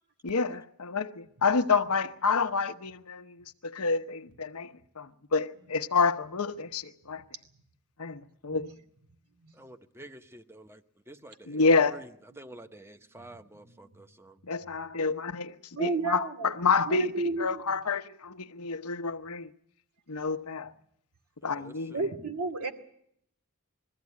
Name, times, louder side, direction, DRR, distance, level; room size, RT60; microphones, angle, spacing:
voice 1, 0.2-3.4 3.6-7.2 8.0-8.7 11.5-12.0 14.4-19.5 20.1-20.7 21.4-21.9, left 4 dB, 85° left, 1.0 m, -28 dB
voice 2, 9.5-14.4 21.4-22.1, right 1 dB, 10° right, 0.9 m, -49 dB
voice 3, 15.7-16.5 16.9-17.6 21.9-22.7, right 3 dB, 80° right, 2.4 m, -32 dB
21.5 x 15.0 x 9.5 m
head